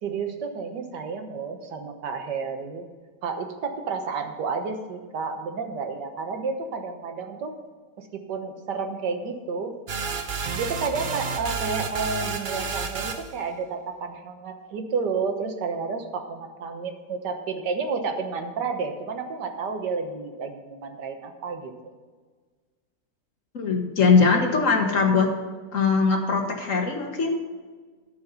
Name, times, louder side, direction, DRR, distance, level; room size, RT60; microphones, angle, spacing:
voice 1, 0.0-2.9 3.2-7.6 8.0-9.7 10.6-21.9, right 5 dB, 85° right, 5 dB, 1.8 m, -31 dB
sound 1, 9.9-13.4, right 5 dB, 55° right, 0.5 m, -30 dB
voice 2, 23.5-25.3 25.7-27.4, left 4 dB, 50° left, 2 dB, 1.7 m, -21 dB
13.5 x 5.5 x 5.6 m, 1.5 s
omnidirectional pair, 1.8 m